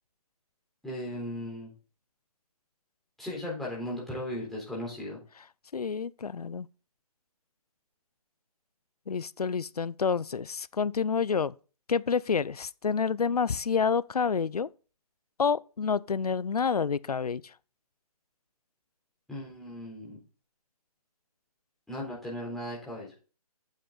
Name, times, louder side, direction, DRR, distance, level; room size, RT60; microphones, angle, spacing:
voice 1, 0.8-1.7 3.2-5.2 19.3-20.2 21.9-23.1, left 1 dB, ahead, 3.8 m, -37 dB
voice 2, 5.7-6.7 9.1-11.5 11.9-14.7 15.4-17.4, left 6 dB, 85° left, 0.6 m, -28 dB
9.2 x 7.5 x 4.0 m
figure-of-eight pair, 145°, 19 cm